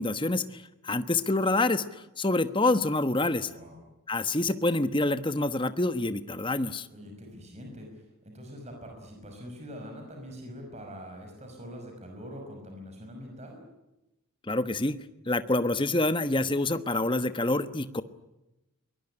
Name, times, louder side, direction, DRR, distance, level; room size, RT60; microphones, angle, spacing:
voice 1, 0.0-3.5 4.1-6.9 14.5-15.0 15.2-18.0, left 2 dB, 20° left, 11 dB, 1.1 m, -27 dB
voice 2, 3.4-3.8 6.9-13.6, equal, 30° right, 3 dB, 5.7 m, -44 dB
23.0 x 21.0 x 9.9 m, 0.96 s
head